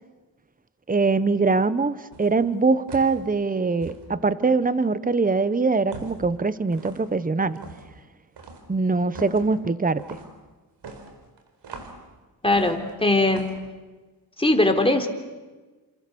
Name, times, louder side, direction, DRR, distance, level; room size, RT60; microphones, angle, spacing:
voice 1, 0.9-7.6 8.7-10.2, right 4 dB, 20° right, 14 dB, 1.1 m, -23 dB
sound 1, 2.1-2.4 2.9-3.2 3.8-4.0 5.9-6.3 6.7-7.1 7.6-7.9 8.4-8.7 9.1-9.5 10.0-10.3 10.8-12.0 12.5-12.9 13.3-13.6, right 3 dB, 90° right, 4.4 m, -40 dB
voice 2, 12.4-13.5 14.4-15.1, left 2 dB, 15° left, 4 dB, 3.6 m, -20 dB
29.0 x 28.0 x 7.1 m, 1.3 s
cardioid pair, 80°, 40 cm